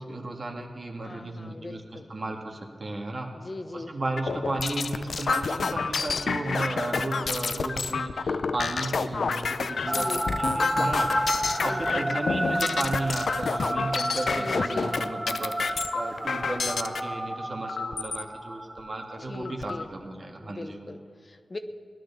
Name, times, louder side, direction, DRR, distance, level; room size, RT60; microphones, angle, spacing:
voice 1, 0.0-1.8 2.1-3.3 3.7-20.8, right 2 dB, 50° right, 2 dB, 2.1 m, -34 dB
voice 2, 1.0-2.1 3.3-3.9 9.8-10.2 11.6-12.1 14.3-15.2 19.2-19.9 20.4-21.6, left 2 dB, 40° left, 8 dB, 0.9 m, -39 dB
sound 1, 4.2-17.0 17.7-18.2 18.8-18.9 19.2-19.8, left 4 dB, 80° left, 0.6 m, -29 dB
sound 2, 9.9-19.3, right 1 dB, 15° right, 0.5 m, -31 dB
18.0 x 11.0 x 7.0 m, 2.3 s
cardioid pair, 65°, 0 cm